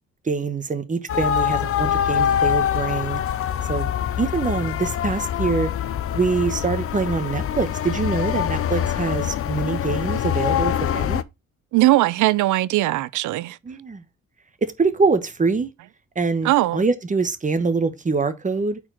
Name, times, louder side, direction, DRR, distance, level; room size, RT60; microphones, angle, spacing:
voice 1, 0.2-3.2 3.6-3.9 4.2-5.7 6.1-11.2 13.6-14.0 14.6-15.7 16.1-18.8, right 4 dB, 25° right, 1.1 m, -24 dB
sound 1, 1.1-11.2, left 10 dB, 50° left, 0.5 m, -24 dB
voice 2, 11.7-13.6 16.4-16.8, right 17 dB, 75° right, 0.5 m, -19 dB
4.4 x 4.4 x 5.7 m
cardioid pair, 90°, 30 cm